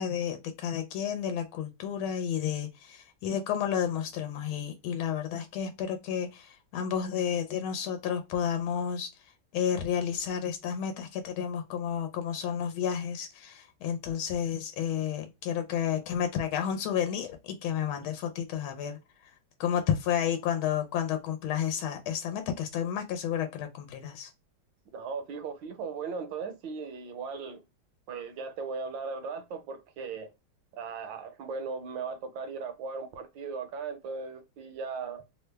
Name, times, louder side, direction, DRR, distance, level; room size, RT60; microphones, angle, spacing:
voice 1, 0.0-9.1 9.5-19.0 19.6-24.3, left 8 dB, 85° left, 1.4 m, -31 dB
voice 2, 24.9-27.6 28.1-30.3 30.7-35.2, right 5 dB, 75° right, 1.3 m, -37 dB
3.4 x 2.1 x 3.2 m
omnidirectional pair, 2.2 m